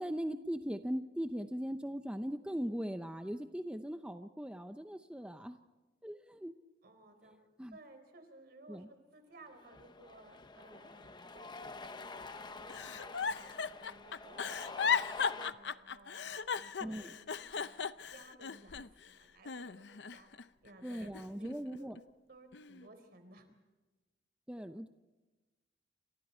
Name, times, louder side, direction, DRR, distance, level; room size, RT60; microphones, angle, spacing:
voice 1, 0.0-5.6 6.0-6.5 7.6-7.7 8.7-8.9 16.8-17.1 20.8-22.0 24.5-24.9, equal, 5° right, 7 dB, 0.7 m, -39 dB
voice 2, 5.2-5.7 6.8-17.8 18.1-21.5 21.8-21.9 22.3-23.5, right 2 dB, 60° right, 7 dB, 4.1 m, -58 dB
Cheering, 9.5-15.5, left 3 dB, 25° left, 0.9 m, -48 dB
Giggle, 12.7-19.1 19.5-20.4 20.9-22.0 22.5-22.9, left 6 dB, 70° left, 0.6 m, -37 dB
29.0 x 26.5 x 4.4 m, 1.2 s
head